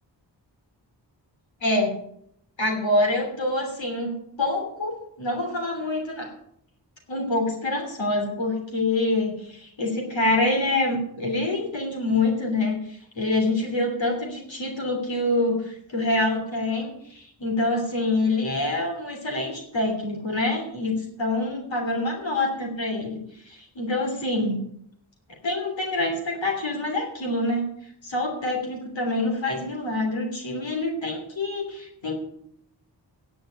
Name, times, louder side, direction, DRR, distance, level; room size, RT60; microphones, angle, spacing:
voice 1, 1.6-1.9 2.6-6.3 7.1-23.2 23.4-24.6 25.4-27.7 28.0-32.1, left 2 dB, 80° left, 1 dB, 3.2 m, -26 dB
10.0 x 8.0 x 9.0 m, 0.71 s
cardioid pair, 40°, 45 cm